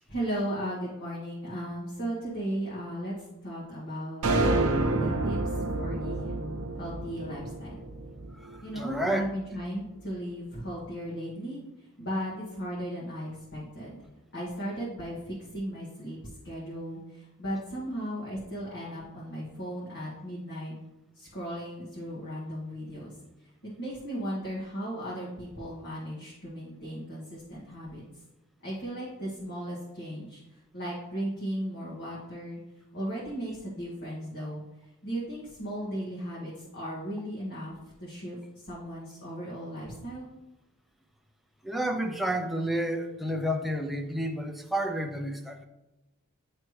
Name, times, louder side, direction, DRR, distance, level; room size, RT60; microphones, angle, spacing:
voice 1, 0.1-3.1 3.4-5.4 5.8-6.3 6.8-7.8 8.6-11.6 12.0-14.0 14.3-16.2 16.4-20.7 21.2-23.1 23.6-28.0 28.6-30.4 30.7-32.6 32.9-34.6 35.0-40.3, equal, 50° left, -7 dB, 1.4 m, -36 dB
sound 1, 4.2-8.6, right 2 dB, 80° right, 0.7 m, -28 dB
voice 2, 8.4-9.3 41.6-45.7, right 1 dB, ahead, 3 dB, 0.4 m, -30 dB
9.5 x 3.3 x 3.1 m, 0.99 s
head